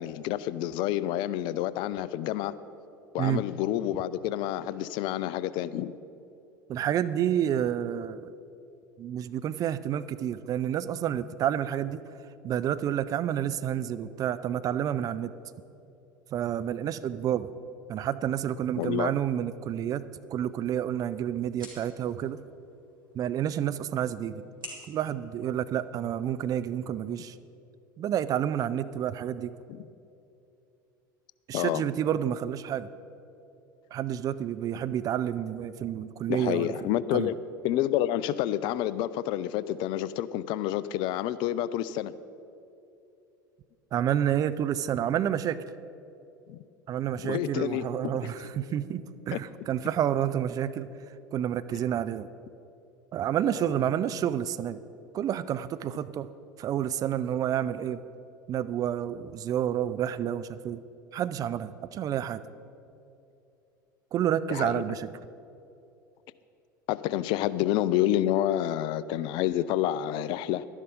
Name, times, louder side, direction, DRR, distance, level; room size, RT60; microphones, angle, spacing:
voice 1, 0.0-2.5 3.1-5.9 18.8-19.1 29.7-29.8 31.5-31.8 36.3-37.4 37.6-42.1 46.5-46.6 47.2-47.8 49.3-49.4 51.7-51.8 53.5-53.7 64.5-64.8 66.9-70.7, left 12 dB, 45° left, 16 dB, 0.4 m, -29 dB
voice 2, 6.7-8.3 9.0-12.0 12.4-15.3 16.3-17.5 17.9-22.4 23.1-24.4 24.9-27.4 28.0-29.5 31.5-32.9 33.9-37.3 43.9-45.6 46.9-50.9 51.3-52.3 53.1-54.8 55.1-56.3 56.6-58.0 58.5-60.8 61.1-62.4 64.1-65.1, right 10 dB, 35° right, 14 dB, 0.4 m, -29 dB
sound 1, 20.3-26.3, right 1 dB, 85° right, 2.4 m, -51 dB
12.0 x 11.0 x 5.1 m, 2.7 s
figure-of-eight pair, 75°, 11 cm